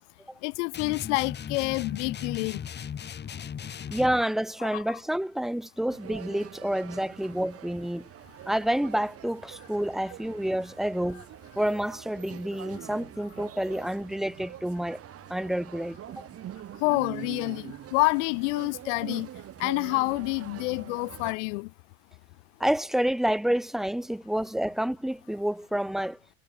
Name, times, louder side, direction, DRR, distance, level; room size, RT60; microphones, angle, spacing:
voice 1, 0.4-2.6 4.6-5.0 16.8-19.3 19.6-21.7, left 27 dB, 65° left, 0.7 m, -28 dB
sound 1, 0.7-4.2, left 8 dB, 25° left, 3.4 m, -37 dB
voice 2, 3.9-8.1 8.5-11.3 11.6-15.0 15.3-16.3 22.6-26.2, right 1 dB, ahead, 0.5 m, -29 dB
sound 2, 5.9-21.3, right 11 dB, 35° right, 4.7 m, -44 dB
supercardioid pair, 120°, 39 cm